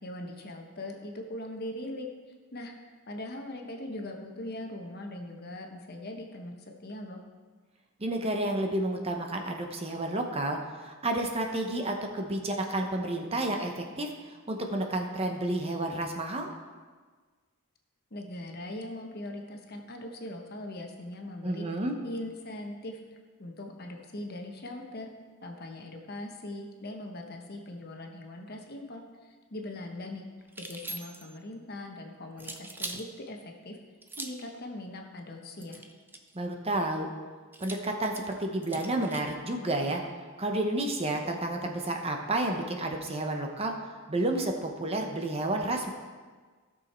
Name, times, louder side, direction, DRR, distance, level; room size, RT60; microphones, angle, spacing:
voice 1, 0.0-2.1 2.5-2.7 3.1-7.2 18.1-21.7 22.0-23.0 23.4-25.1 25.4-30.2 30.6-33.8 34.2-35.8, left 1 dB, 45° left, 2 dB, 1.2 m, -40 dB
voice 2, 8.0-16.5 21.4-21.9 36.3-37.1 37.6-40.0 40.4-43.8 44.1-45.9, right 1 dB, 30° right, 3 dB, 0.9 m, -31 dB
sound 1, 30.5-31.4 32.4-33.1 34.0-34.5 35.6-36.4 37.5-39.3, right 2 dB, 10° right, 0.5 m, -42 dB
15.5 x 6.4 x 4.4 m, 1.5 s
head